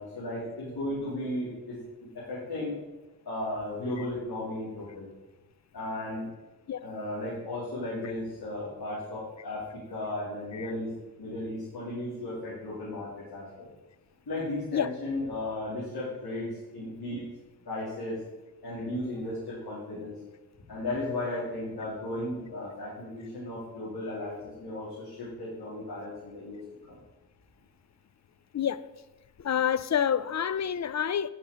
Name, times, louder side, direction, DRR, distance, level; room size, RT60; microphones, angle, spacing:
voice 1, 0.0-1.8 2.1-2.8 3.2-5.1 5.7-6.3 6.8-10.9 11.2-13.7 14.3-17.2 17.6-18.2 18.6-20.1 20.7-26.6 26.9-27.0, left 1 dB, 80° left, 3.0 m, -35 dB
voice 2, 28.5-28.9 29.4-31.3, left 8 dB, 50° left, 0.5 m, -28 dB
9.3 x 5.9 x 5.0 m
wide cardioid pair, 70°, 37 cm